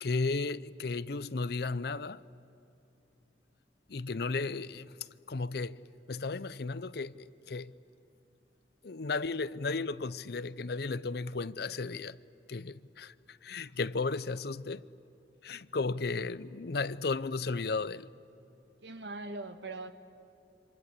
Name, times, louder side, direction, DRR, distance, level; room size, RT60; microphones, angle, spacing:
voice 1, 0.0-2.2 3.9-5.0 5.3-5.8 6.1-7.7 8.8-12.2 12.5-14.8 15.4-18.1, left 3 dB, 60° left, 0.6 m, -34 dB
voice 2, 18.8-19.9, right 2 dB, 75° right, 1.6 m, -41 dB
27.5 x 26.5 x 8.1 m
head